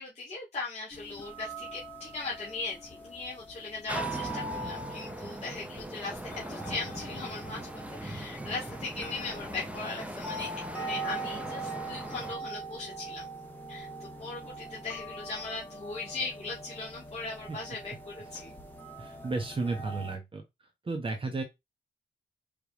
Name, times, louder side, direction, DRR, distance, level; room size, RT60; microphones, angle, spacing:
voice 1, 0.0-10.5 10.7-13.3 13.7-18.5, left 3 dB, 30° left, 1.9 m, -39 dB
sound 1, 0.9-20.2, right 2 dB, 10° left, 1.4 m, -42 dB
sound 2, 3.9-12.4, right 1 dB, 5° right, 0.6 m, -40 dB
voice 2, 19.0-20.4 20.9-21.4, right 3 dB, 25° right, 1.1 m, -33 dB
5.1 x 3.3 x 3.1 m
cardioid pair, 120°, 20 cm